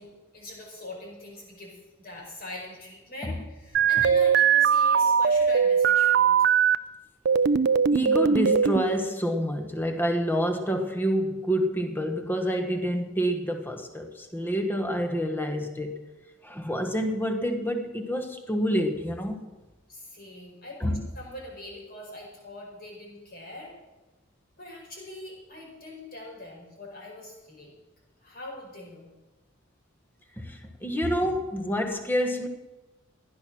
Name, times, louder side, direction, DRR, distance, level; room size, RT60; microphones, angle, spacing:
voice 1, 0.0-6.4 19.9-23.7 24.6-27.7 28.2-29.1, left 1 dB, 45° left, 5.0 m, -42 dB
sound 1, 3.7-6.7 7.2-8.8, right 7 dB, 50° right, 0.4 m, -20 dB
voice 2, 7.9-16.0 16.4-19.4 20.8-21.0 30.4-32.5, equal, 10° left, 1.1 m, -28 dB
15.5 x 11.0 x 6.2 m
head